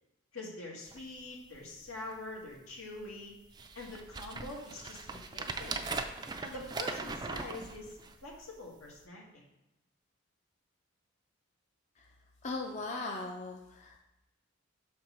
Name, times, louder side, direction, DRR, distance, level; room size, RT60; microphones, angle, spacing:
voice 1, 0.3-3.3 3.8-5.8 6.4-9.4, left 2 dB, 85° left, -3 dB, 2.1 m, -44 dB
sound 1, 0.9-1.0 1.5-1.6 1.9-2.4 3.0-3.1 3.5-8.4 9.0-9.1, right 3 dB, 20° right, 0.3 m, -40 dB
voice 2, 12.4-14.0, left 3 dB, 35° left, 1 dB, 0.5 m, -38 dB
6.5 x 4.5 x 5.3 m, 0.92 s
head